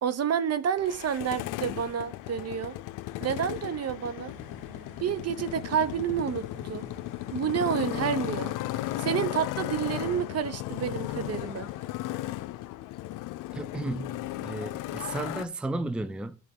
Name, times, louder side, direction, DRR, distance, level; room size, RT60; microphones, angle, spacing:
voice 1, 0.0-2.7 3.2-4.3 5.0-6.9 7.3-8.5 9.0-11.7, right 8 dB, 55° right, 0.9 m, -29 dB
Motorcycle, 0.8-15.5, left 15 dB, 85° left, 0.5 m, -35 dB
sound 1, 4.3-12.1, right 2 dB, 85° right, 2.1 m, -51 dB
voice 2, 13.5-16.4, right 2 dB, 5° right, 0.5 m, -34 dB
10.5 x 3.6 x 4.7 m
cardioid pair, 85°, 31 cm